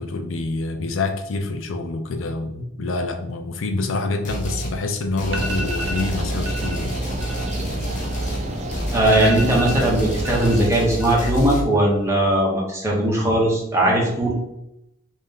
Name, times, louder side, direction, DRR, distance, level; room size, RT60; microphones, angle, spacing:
voice 1, 0.0-7.0, left 3 dB, 85° left, 6 dB, 0.5 m, -26 dB
sound 1, 4.2-4.8 5.2-11.6, right 1 dB, 40° left, 0.8 m, -29 dB
sound 2, 5.3-10.6, right 1 dB, 35° right, 0.6 m, -30 dB
sound 3, 5.3-6.1 6.5-6.8 7.1-8.5 8.8-8.9 9.1-10.6 10.9-11.5 11.8-12.3, equal, 70° right, 0.8 m, -32 dB
voice 2, 8.9-14.3, right 1 dB, 15° right, -3 dB, 1.0 m, -19 dB
3.2 x 2.6 x 3.6 m, 0.83 s
head